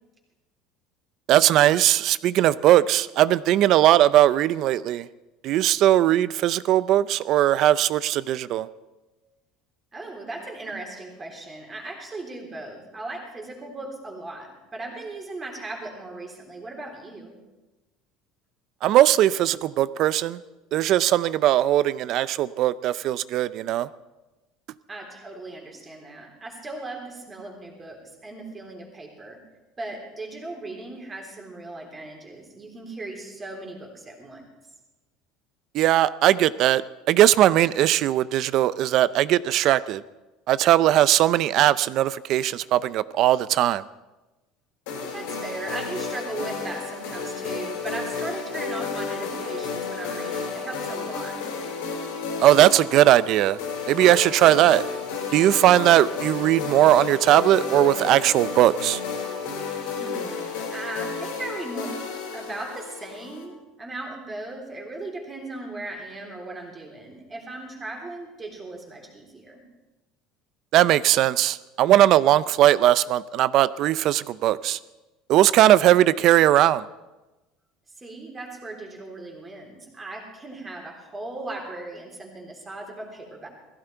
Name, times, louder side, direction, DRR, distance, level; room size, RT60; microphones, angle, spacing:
voice 1, 1.3-5.1 5.4-8.7 18.8-20.4 20.7-23.9 35.7-36.8 37.1-40.0 40.5-43.8 52.4-53.6 53.9-54.8 55.3-59.0 70.7-74.8 75.3-76.8, right 13 dB, 50° right, 17 dB, 0.5 m, -19 dB
voice 2, 9.9-17.4 24.9-29.4 29.8-34.4 45.1-51.4 60.0-62.0 62.3-69.6 78.0-83.5, right 2 dB, 20° right, 1 dB, 3.5 m, -37 dB
sound 1, 44.9-63.4, left 5 dB, 90° left, 4.7 m, -32 dB
18.0 x 15.5 x 4.6 m, 1.1 s
cardioid pair, 145°, 0 cm